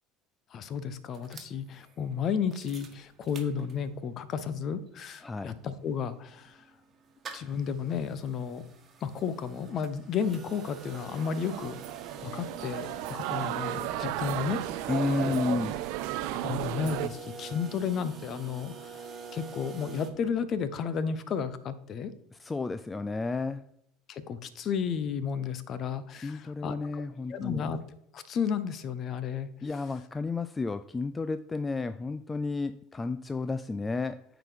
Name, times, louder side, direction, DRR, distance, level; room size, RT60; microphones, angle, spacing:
voice 1, 0.5-6.7 7.3-8.6 9.0-11.8 12.2-14.9 15.2-15.4 16.3-19.0 19.3-22.1 24.1-27.0 27.3-27.8 28.1-29.5, left 7 dB, 45° left, 15 dB, 0.8 m, -33 dB
sound 1, 1.1-4.1 4.5-4.6 4.8-20.1, right 4 dB, 35° right, 1.4 m, -48 dB
voice 2, 5.2-5.5 14.9-15.8 22.4-23.6 26.2-27.6 29.6-34.2, left 4 dB, 20° left, 12 dB, 0.4 m, -32 dB
sound 2, 10.5-17.1, right 14 dB, 65° right, 0.5 m, -34 dB
8.9 x 4.0 x 5.1 m, 0.73 s
hypercardioid pair, 70°, 0 cm